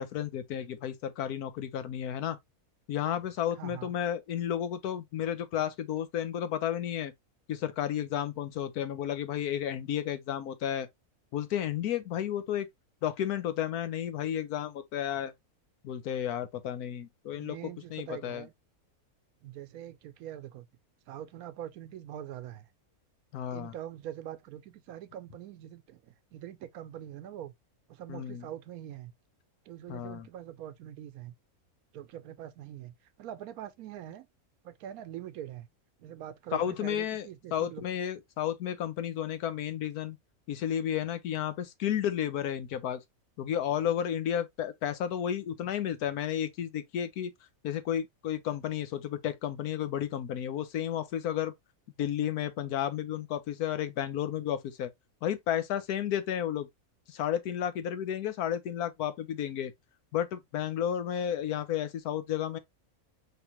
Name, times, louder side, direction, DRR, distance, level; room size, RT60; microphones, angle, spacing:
voice 1, 0.0-2.4 2.9-7.1 7.5-10.9 11.3-12.7 13.0-15.3 15.8-17.6 17.9-18.5 23.3-23.7 28.1-28.5 29.9-30.3 36.5-40.2 40.5-43.0 43.4-47.3 47.6-51.5 52.0-54.9 55.2-56.7 57.1-59.7 60.1-62.6, left 10 dB, 85° left, 1.2 m, -32 dB
voice 2, 3.6-3.9 17.4-18.5 19.4-20.7 21.1-22.7 23.5-27.5 27.9-29.1 29.7-31.3 31.9-34.3 34.6-35.7 36.0-37.8, right 11 dB, 80° right, 1.1 m, -43 dB
4.9 x 3.2 x 2.9 m
omnidirectional pair, 1.6 m